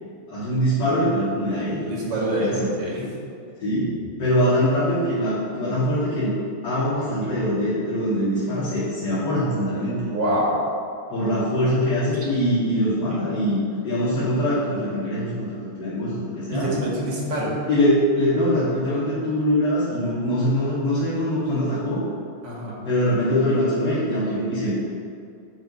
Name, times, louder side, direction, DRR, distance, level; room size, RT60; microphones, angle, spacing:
voice 1, 0.3-2.7 3.6-3.9 4.2-6.3 6.6-10.1 11.1-13.6 13.8-15.5 15.8-16.7 17.7-22.0 22.8-24.7, equal, 55° left, -14 dB, 2.9 m, -23 dB
voice 2, 1.8-3.1 10.0-10.6 16.5-17.5 22.4-22.8, right 1 dB, 60° right, -4 dB, 2.3 m, -25 dB
10.5 x 3.9 x 5.5 m, 2.5 s
omnidirectional pair, 2.3 m